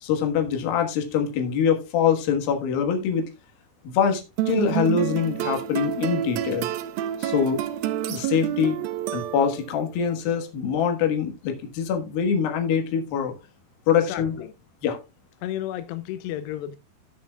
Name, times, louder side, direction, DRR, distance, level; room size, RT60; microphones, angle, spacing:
voice 1, 0.0-3.3 3.8-6.7 7.2-7.6 8.1-8.8 9.1-13.3 13.9-14.3 14.8-15.0, left 7 dB, 65° left, 3.1 m, -24 dB
sound 1, 4.4-9.8, right 12 dB, 80° right, 2.2 m, -28 dB
voice 2, 14.0-14.5 15.4-16.8, left 12 dB, 85° left, 2.7 m, -32 dB
17.5 x 6.2 x 2.3 m
omnidirectional pair, 4.8 m